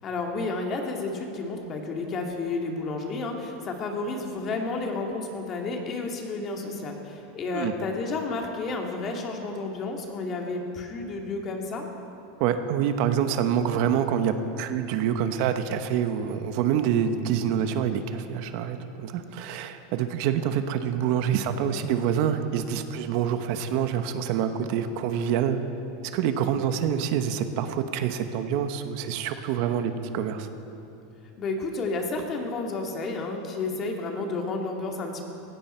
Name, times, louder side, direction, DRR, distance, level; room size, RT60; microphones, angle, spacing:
voice 1, 0.0-11.9 31.4-35.2, left 3 dB, 35° left, 2 dB, 2.4 m, -31 dB
voice 2, 12.4-25.6 26.1-30.5, right 8 dB, 60° right, 8 dB, 1.1 m, -26 dB
17.5 x 16.0 x 4.5 m, 2.9 s
supercardioid pair, 130°, 0 cm